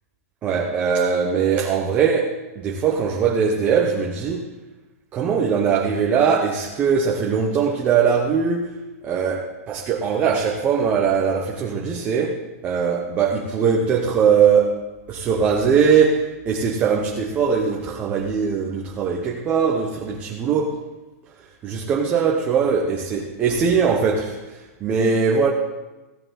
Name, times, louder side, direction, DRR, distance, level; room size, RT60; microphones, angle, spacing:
voice 1, 0.4-4.5 5.1-8.7 9.0-14.8 15.1-20.8 21.6-25.5, right 6 dB, 15° right, 0 dB, 0.7 m, -21 dB
15.0 x 10.5 x 3.8 m, 1.1 s
supercardioid pair, 175°, 8 cm